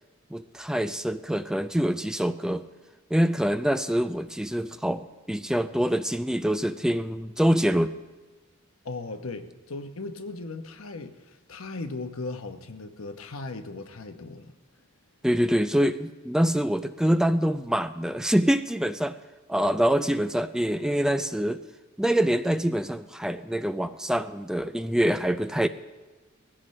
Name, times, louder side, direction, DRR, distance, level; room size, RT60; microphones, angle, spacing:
voice 1, 0.3-2.6 3.1-7.9 15.2-19.2 19.5-21.6 22.0-25.7, equal, 5° right, 10 dB, 0.4 m, -25 dB
voice 2, 8.8-14.5, left 3 dB, 75° left, 7 dB, 1.0 m, -37 dB
20.0 x 16.0 x 3.2 m, 1.2 s
head